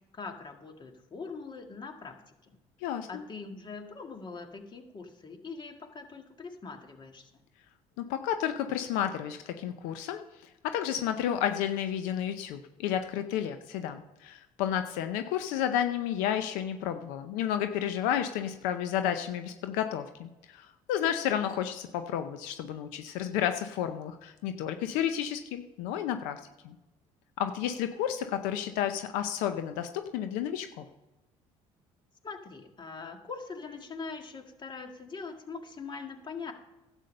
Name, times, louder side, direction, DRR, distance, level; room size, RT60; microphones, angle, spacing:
voice 1, 0.1-2.2 2.4-2.6 3.1-7.3 32.2-36.5, left 4 dB, 35° left, 5 dB, 1.8 m, -42 dB
voice 2, 2.8-3.2 8.0-26.8 27.4-30.9, left 10 dB, 90° left, 8 dB, 0.7 m, -31 dB
11.5 x 8.2 x 5.4 m, 1.0 s
supercardioid pair, 85°, 13 cm